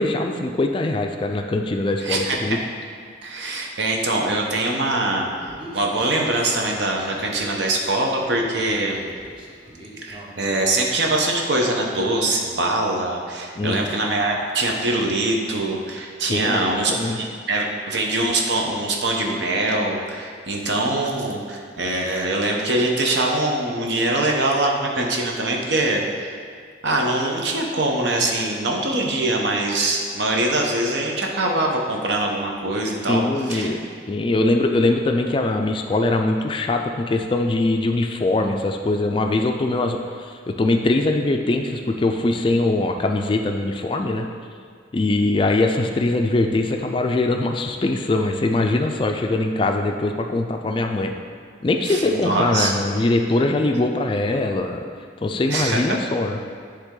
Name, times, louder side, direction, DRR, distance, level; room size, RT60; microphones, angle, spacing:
voice 1, 0.0-2.6 13.6-13.9 16.2-17.2 33.1-33.8 34.1-44.3 44.9-51.1 51.6-54.8 55.2-56.6, left 2 dB, 25° left, 4 dB, 0.3 m, -22 dB
voice 2, 2.0-2.6 3.2-9.0 10.0-26.3 26.8-33.8 51.9-52.7 55.5-56.0, right 2 dB, 70° right, 0 dB, 0.9 m, -23 dB
Human voice, 5.5-11.5, right 1 dB, 25° right, 0.9 m, -43 dB
10.0 x 3.4 x 3.8 m, 2.1 s
head